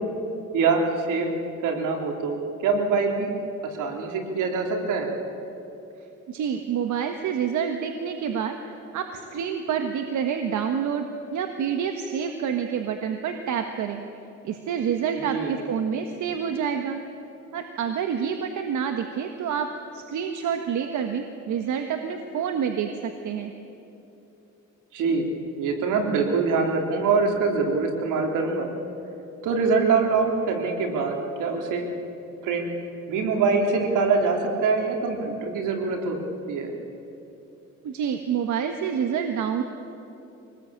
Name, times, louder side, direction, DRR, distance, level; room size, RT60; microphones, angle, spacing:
voice 1, 0.5-1.4 1.6-3.3 3.6-5.1 15.3-15.5 24.9-25.3 25.6-28.7 29.4-31.9 32.4-32.7 33.1-36.2 36.5-36.7, right 4 dB, 90° right, 2 dB, 3.5 m, -24 dB
voice 2, 6.3-14.0 14.4-17.0 17.5-23.5 37.8-39.6, right 7 dB, 75° right, 6 dB, 1.6 m, -28 dB
24.5 x 19.5 x 8.8 m, 2.9 s
cardioid pair, 90°, 30 cm